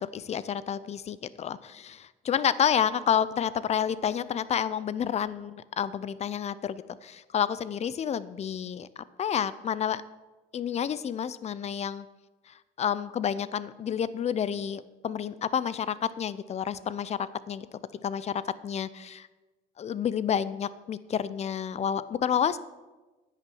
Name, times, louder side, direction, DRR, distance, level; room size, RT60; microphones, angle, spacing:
voice 1, 0.0-8.9 9.2-10.0 10.5-12.1 12.8-17.2 17.5-17.7 18.0-19.3 19.8-22.6, left 8 dB, 40° left, 16 dB, 0.6 m, -29 dB
10.0 x 6.9 x 7.7 m, 1.2 s
cardioid pair, 110°, 17 cm